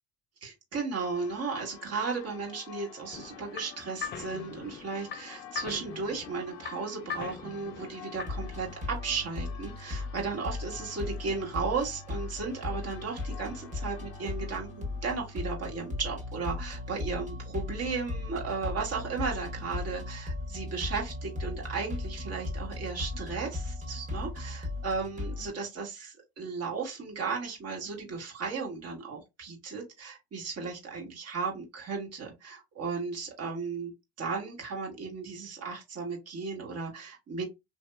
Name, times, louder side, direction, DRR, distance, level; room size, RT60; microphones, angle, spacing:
voice 1, 0.4-33.9 34.2-37.4, right 4 dB, 50° right, -1 dB, 1.5 m, -35 dB
Church bell, 0.9-16.7, left 9 dB, 90° left, 0.7 m, -51 dB
sound 1, 3.1-8.6, left 7 dB, 35° left, 0.4 m, -41 dB
sound 2, 8.2-25.5, left 2 dB, 25° right, 1.2 m, -37 dB
3.1 x 2.8 x 2.2 m, 0.23 s
supercardioid pair, 90°, 32 cm